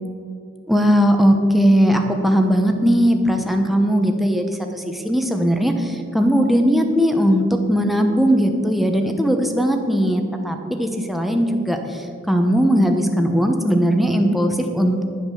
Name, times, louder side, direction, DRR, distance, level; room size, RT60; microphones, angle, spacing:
voice 1, 0.7-15.0, equal, ahead, 4 dB, 1.0 m, -18 dB
11.0 x 7.8 x 7.0 m, 2.5 s
head